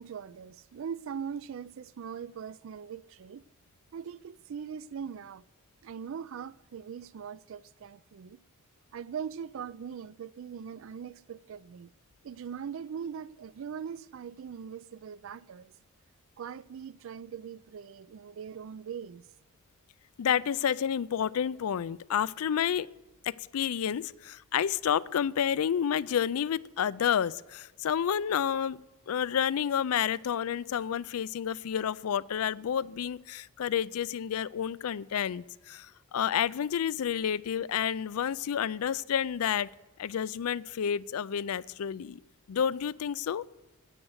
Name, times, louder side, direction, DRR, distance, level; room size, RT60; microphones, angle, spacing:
voice 1, 0.0-3.4 3.9-5.4 5.8-8.4 8.9-11.9 12.2-15.7 16.4-19.2, right 7 dB, 60° right, 0.3 m, -41 dB
voice 2, 20.2-22.9 23.2-28.8 29.1-39.7 40.0-42.2 42.5-43.4, left 8 dB, 85° left, 0.4 m, -30 dB
9.9 x 8.9 x 8.0 m
head